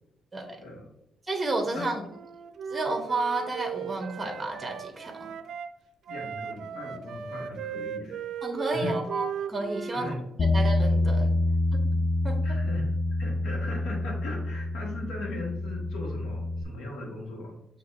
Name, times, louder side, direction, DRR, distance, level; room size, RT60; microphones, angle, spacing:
voice 1, 0.5-0.9 1.7-2.0 6.1-8.2 8.7-9.0 9.9-10.2 12.4-12.9 13.2-17.6, left 2 dB, 80° left, -2 dB, 1.4 m, -38 dB
voice 2, 1.3-2.0 2.7-5.3 8.4-10.1 10.4-11.3 11.7-11.8 12.2-12.6, right 2 dB, 20° right, 3 dB, 0.8 m, -31 dB
Wind instrument woodwind instrument, 2.1-5.7 6.1-10.2, right 7 dB, 70° right, 0.3 m, -36 dB
Bass guitar, 10.4-16.6, left 2 dB, 35° left, 0.4 m, -27 dB
6.3 x 2.8 x 2.5 m, 0.86 s
cardioid pair, 90°, 0 cm